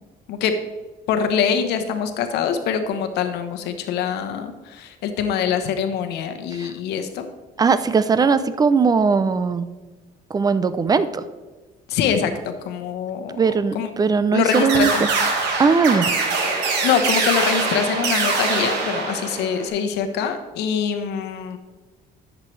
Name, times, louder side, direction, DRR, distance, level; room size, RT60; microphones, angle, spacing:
voice 1, 1.1-7.3 11.9-13.9 14.3-15.1 16.8-21.6, left 7 dB, 80° left, 8 dB, 1.0 m, -24 dB
voice 2, 7.6-9.7 10.3-11.1 13.3-14.9 15.6-16.1, right 5 dB, 20° right, 13 dB, 0.5 m, -19 dB
sound 1, 14.5-19.7, right 4 dB, 85° right, 1.8 m, -23 dB
11.0 x 7.5 x 3.3 m, 1.2 s
cardioid pair, 110°, 17 cm